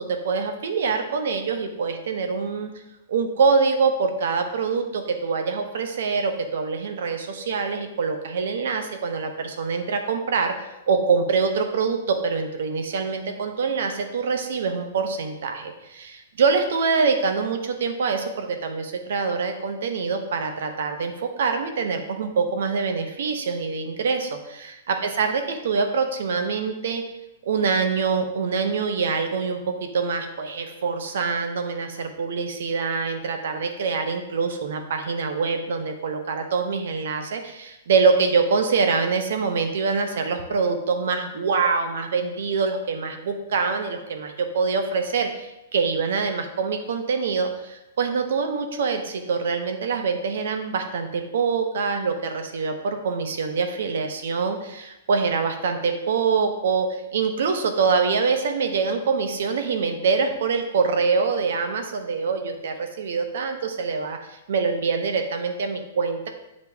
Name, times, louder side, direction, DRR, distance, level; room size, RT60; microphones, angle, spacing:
voice 1, 0.0-2.7 3.1-10.5 10.9-27.0 27.4-56.9 57.1-66.3, right 5 dB, 65° right, 6 dB, 1.0 m, -25 dB
7.9 x 5.2 x 3.5 m, 0.91 s
hypercardioid pair, 175°, 0 cm